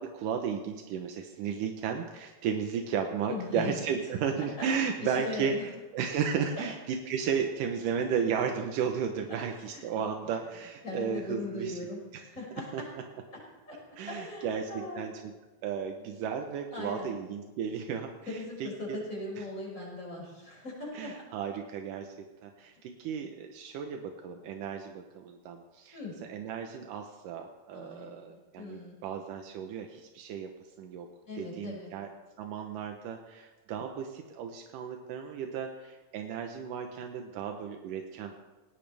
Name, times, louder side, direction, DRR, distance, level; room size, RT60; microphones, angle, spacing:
voice 1, 0.0-5.5 5.9-11.7 12.1-12.2 12.7-12.8 14.0-15.3 15.6-19.0 19.4-19.5 20.9-22.2 22.4-26.0 26.3-30.5 30.8-31.1 31.4-32.1 32.4-38.4, right 7 dB, 85° right, 4 dB, 2.5 m, -34 dB
voice 2, 3.3-3.7 4.4-4.7 5.0-5.6 6.6-6.7 9.3-9.8 10.8-12.9 13.7-13.8 14.1-15.0 16.7-17.2 17.6-18.0 18.3-21.1 25.9-26.1 27.7-28.3 28.6-29.0 31.2-31.9, left 3 dB, 25° left, -4 dB, 6.5 m, -39 dB
19.5 x 17.5 x 3.4 m, 1.2 s
omnidirectional pair, 3.7 m